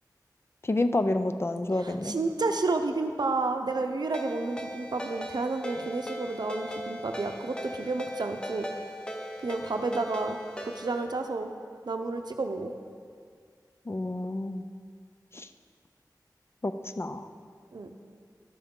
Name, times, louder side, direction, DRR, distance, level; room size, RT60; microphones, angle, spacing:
voice 1, 0.6-2.2 13.9-14.7 15.3-15.5 16.6-17.3, left 2 dB, 35° left, 9 dB, 0.4 m, -29 dB
voice 2, 1.8-8.7 9.4-11.5 11.9-12.7 17.7-17.9, right 3 dB, 75° right, 6 dB, 0.6 m, -31 dB
Ringtone, 4.1-11.0, equal, 10° left, 0.7 m, -39 dB
11.5 x 7.0 x 3.7 m, 2.1 s
wide cardioid pair, 70°, 7 cm